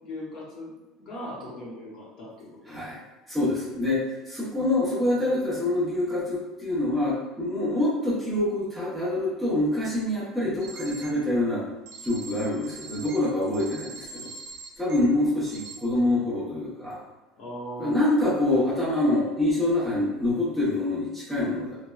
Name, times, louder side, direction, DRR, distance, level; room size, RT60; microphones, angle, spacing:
voice 1, 0.0-2.8 17.4-18.0, equal, 45° left, -6 dB, 0.8 m, -39 dB
voice 2, 2.7-3.0 3.3-11.6 12.0-14.3 14.8-17.0 17.8-21.8, left 1 dB, ahead, -10 dB, 0.8 m, -26 dB
sound 1, 10.6-11.1 11.9-15.0 15.5-15.8, right 4 dB, 70° right, 0.6 m, -42 dB
3.2 x 2.1 x 2.3 m, 1.0 s
cardioid pair, 155°, 0 cm